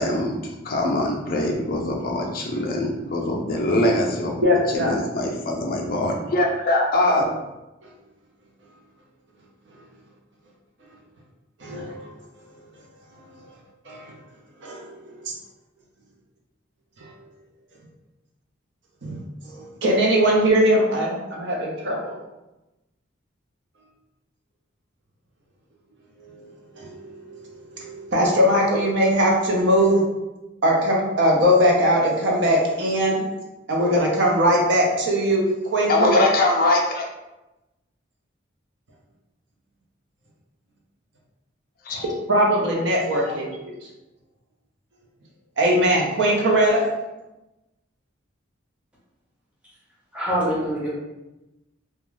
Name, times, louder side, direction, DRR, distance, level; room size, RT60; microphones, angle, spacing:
voice 1, 0.0-7.2 35.9-37.0 41.8-42.1 43.2-43.4, left 2 dB, 45° left, 0 dB, 0.4 m, -23 dB
voice 2, 4.4-4.9 11.6-12.1 13.9-14.0 14.6-14.9 15.2-15.3 17.0-17.1 19.0-19.2 19.5-22.2 26.7-30.0 30.6-33.3 33.7-35.4 35.7-36.2 42.3-43.5 45.6-46.8 50.4-50.5, equal, 60° right, -2 dB, 0.6 m, -20 dB
voice 3, 50.1-50.9, equal, 5° right, -7 dB, 0.7 m, -24 dB
2.4 x 2.2 x 3.1 m, 0.99 s
head